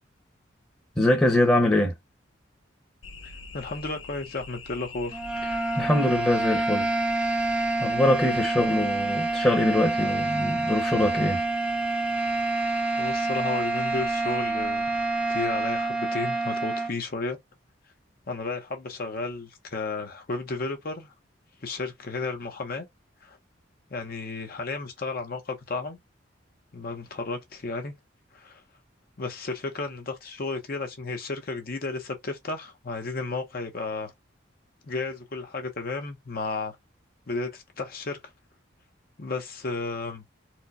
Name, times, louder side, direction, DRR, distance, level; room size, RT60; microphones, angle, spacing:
voice 1, 1.0-1.9 5.8-6.9 7.8-11.4, left 1 dB, 10° left, 0.9 m, -23 dB
sound 1, 3.0-15.9, left 5 dB, 85° left, 0.7 m, -43 dB
voice 2, 3.2-5.2 13.0-14.9 15.3-17.4 18.3-21.1 21.6-22.9 23.2-23.4 23.9-26.0 26.7-27.9 28.3-28.6 29.2-34.1 34.8-36.8 37.3-38.2 39.2-40.2, left 3 dB, 50° left, 0.8 m, -33 dB
sound 2, 5.1-16.9, right 3 dB, 5° right, 0.5 m, -27 dB
4.4 x 2.1 x 2.6 m
head